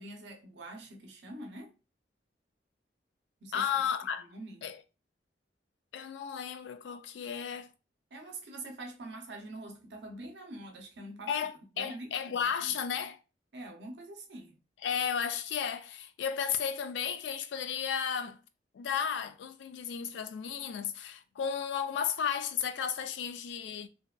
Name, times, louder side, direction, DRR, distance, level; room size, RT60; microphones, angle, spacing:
voice 1, 0.0-1.7 3.4-3.9 4.3-4.6 8.1-11.3 11.7-12.7 13.5-14.6, right 2 dB, 70° right, 0.6 m, -45 dB
voice 2, 3.5-4.3 4.6-4.8 5.9-7.7 11.3-13.2 14.8-18.4 18.7-23.9, left 7 dB, 80° left, 0.3 m, -33 dB
2.7 x 2.3 x 2.2 m
head